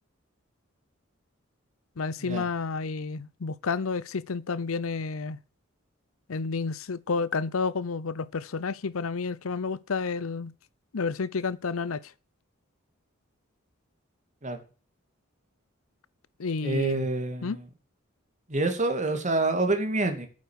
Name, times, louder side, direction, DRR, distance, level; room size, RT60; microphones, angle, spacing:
voice 1, 2.0-5.4 6.3-10.5 10.9-12.1 16.4-17.1 17.4-17.6, left 4 dB, 75° left, 0.7 m, -30 dB
voice 2, 16.6-17.6 18.5-20.3, right 2 dB, 35° right, 2.5 m, -27 dB
9.3 x 8.4 x 6.4 m
head